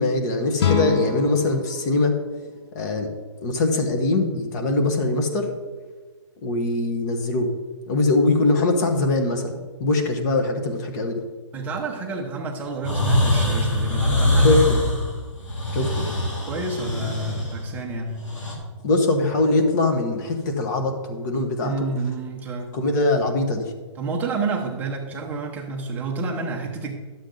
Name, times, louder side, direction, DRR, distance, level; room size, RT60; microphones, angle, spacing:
voice 1, 0.0-2.1 2.7-3.1 3.4-5.5 6.4-7.5 7.9-11.2 14.4-14.7 15.7-16.1 18.8-21.7 22.7-23.7, left 2 dB, 35° left, 4 dB, 1.3 m, -22 dB
sound 1, 0.6-3.6, left 6 dB, 60° left, 0.9 m, -28 dB
voice 2, 11.5-14.7 16.4-18.3 21.6-22.8 24.0-27.0, right 3 dB, 10° right, -1 dB, 0.9 m, -29 dB
sound 2, 12.8-18.5, left 1 dB, 90° left, 2.8 m, -23 dB
12.0 x 7.3 x 3.9 m, 1.4 s
hypercardioid pair, 160°, 16 cm